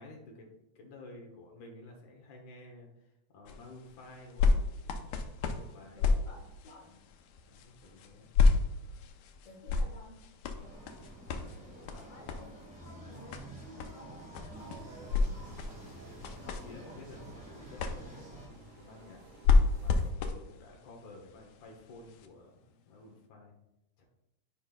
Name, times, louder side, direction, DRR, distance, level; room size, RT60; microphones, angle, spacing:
voice 1, 0.0-4.6 4.9-6.1 6.9-7.0 7.5-8.3 11.4-11.8 15.5-15.8 16.4-19.2 19.8-23.5 24.0-24.1, left 2 dB, 65° left, 1 dB, 2.3 m, -52 dB
sound 1, 3.5-22.3 22.9-23.0, left 4 dB, 85° left, 1.6 m, -32 dB
voice 2, 5.9-6.9 9.4-10.2 10.6-10.9 11.8-15.0, left 1 dB, 35° left, -3 dB, 1.2 m, -54 dB
sound 2, 10.5-18.5, right 1 dB, 5° right, 1.2 m, -49 dB
sound 3, 14.5-20.1, right 5 dB, 80° right, 1.4 m, -56 dB
11.5 x 5.3 x 2.4 m, 0.87 s
omnidirectional pair, 4.1 m